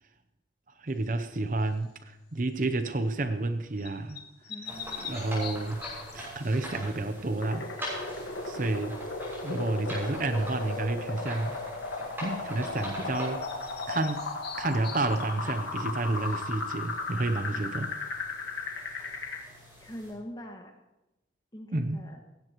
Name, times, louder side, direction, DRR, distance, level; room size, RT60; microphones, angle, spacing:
voice 1, 0.8-4.2 5.1-5.8 6.1-7.7 8.4-9.0 9.4-11.6 12.2-13.4 13.9-14.2 14.6-17.9 21.7-22.0, right 2 dB, 45° right, 9 dB, 0.7 m, -30 dB
sound 1, 1.6-2.0 3.8-6.4 12.8-12.9 13.1-15.6, left 7 dB, 55° left, 1.5 m, -43 dB
voice 2, 4.5-5.2 17.5-17.6 19.8-20.7 21.5-22.2, equal, 20° left, 2 dB, 1.8 m, -43 dB
sound 2, 4.6-20.1, equal, 10° right, 6.2 m, -43 dB
sound 3, 7.4-19.4, left 3 dB, 85° left, 1.7 m, -36 dB
17.5 x 15.5 x 3.1 m, 0.97 s
head